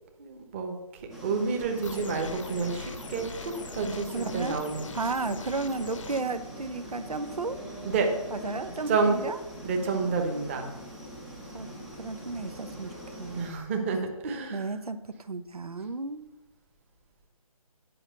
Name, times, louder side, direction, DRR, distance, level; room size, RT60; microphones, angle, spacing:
voice 1, 0.2-0.8 1.2-4.9 7.8-8.1 8.9-9.2 9.6-10.7 13.3-14.6, right 4 dB, 20° right, 4 dB, 1.1 m, -29 dB
sound 1, 1.1-13.5, equal, ahead, 0.6 m, -43 dB
sound 2, 1.8-6.2, left 4 dB, 60° left, 0.9 m, -42 dB
voice 2, 4.1-4.6 4.9-7.6 8.3-9.4 11.5-11.7 12.0-13.4 14.5-16.2, right 3 dB, 90° right, 10 dB, 0.9 m, -33 dB
9.9 x 5.5 x 6.6 m, 0.96 s
figure-of-eight pair, 160°, 19 cm